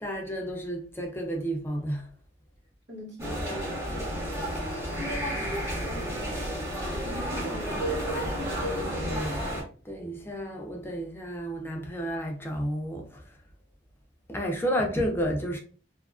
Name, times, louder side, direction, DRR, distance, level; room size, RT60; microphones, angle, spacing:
voice 1, 0.0-2.1 9.8-13.4 14.3-15.6, equal, 15° left, 0.4 m, -31 dB
voice 2, 2.9-3.8 5.8-6.7 6.9-8.8, right 1 dB, 85° right, 1.4 m, -42 dB
sound 1, 3.2-9.6, equal, 15° right, 1.1 m, -31 dB
2.7 x 2.4 x 2.4 m
head